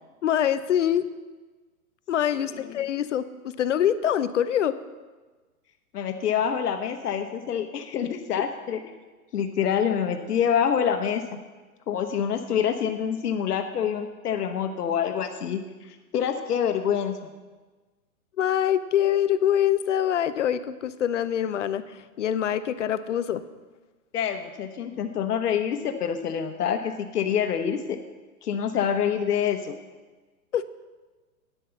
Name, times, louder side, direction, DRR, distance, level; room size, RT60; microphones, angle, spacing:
voice 1, 0.2-1.0 2.1-4.7 18.4-23.4 30.5-30.7, left 10 dB, 55° left, 13 dB, 0.5 m, -24 dB
voice 2, 5.9-8.8 9.3-11.2 11.9-15.6 16.1-17.2 24.1-28.0 28.4-29.8, left 8 dB, 85° left, 6 dB, 1.1 m, -26 dB
9.4 x 7.3 x 7.0 m, 1.3 s
hypercardioid pair, 170°, 46 cm